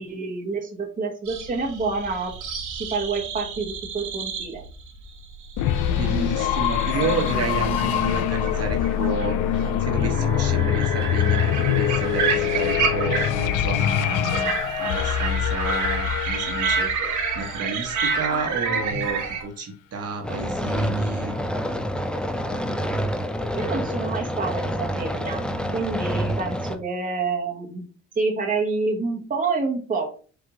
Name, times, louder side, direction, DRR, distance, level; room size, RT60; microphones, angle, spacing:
voice 1, 0.0-2.3 2.7-4.6 23.5-25.5 25.7-27.8 28.1-30.1, right 4 dB, 25° right, 1 dB, 1.0 m, -28 dB
sound 1, 1.3-19.4, right 5 dB, 70° right, 1.3 m, -30 dB
sound 2, 5.6-18.3, left 10 dB, 80° left, 0.5 m, -24 dB
voice 2, 6.0-14.5 14.8-21.4 24.9-25.1, right 3 dB, 50° right, 4 dB, 1.1 m, -31 dB
sound 3, 20.2-26.8, equal, 5° left, 0.5 m, -27 dB
4.7 x 2.5 x 3.8 m, 0.40 s
supercardioid pair, 75°, 32 cm